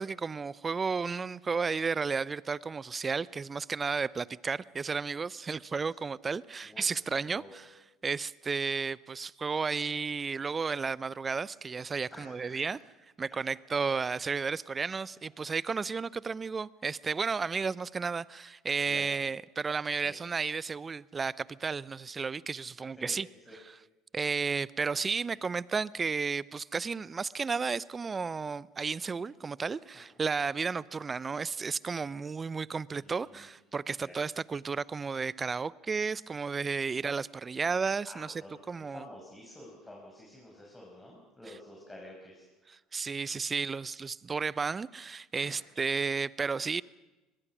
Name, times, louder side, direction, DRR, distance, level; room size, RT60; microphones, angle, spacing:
voice 1, 0.0-7.4 8.0-12.8 13.2-23.2 24.1-38.3 38.7-39.0 42.9-46.8, right 5 dB, 30° right, 0.6 m, -33 dB
voice 2, 6.6-7.5 12.1-12.8 15.5-15.8 18.9-19.1 20.0-20.2 23.0-23.6 33.0-33.5 34.0-34.1 36.9-37.1 38.0-42.5 45.4-45.7 46.7-46.8, left 1 dB, 15° left, 6.1 m, -50 dB
23.0 x 21.0 x 6.1 m
hypercardioid pair, 65°, 0 cm